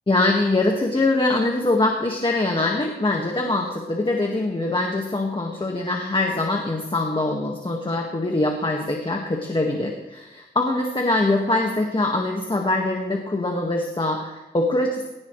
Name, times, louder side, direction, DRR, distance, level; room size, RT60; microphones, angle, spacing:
voice 1, 0.1-15.0, left 2 dB, 25° left, 1 dB, 1.7 m, -23 dB
21.0 x 18.0 x 3.2 m, 1.0 s
wide cardioid pair, 115°, 18 cm